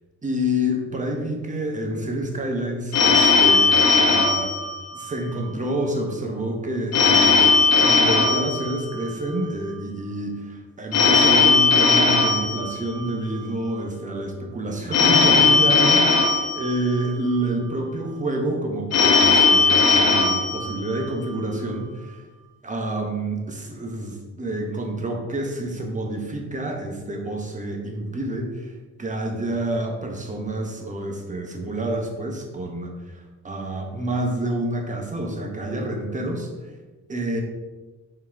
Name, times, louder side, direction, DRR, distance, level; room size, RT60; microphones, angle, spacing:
voice 1, 0.2-4.5 4.9-7.5 7.8-22.2 22.6-36.5 37.1-37.4, right 1 dB, 25° right, 2 dB, 1.2 m, -28 dB
Telephone, 2.9-5.4 6.9-9.4 10.9-13.4 14.9-17.4 18.9-21.4, left 4 dB, 55° left, 1.2 m, -18 dB
6.1 x 4.6 x 3.6 m, 1.3 s
cardioid pair, 90°, 30 cm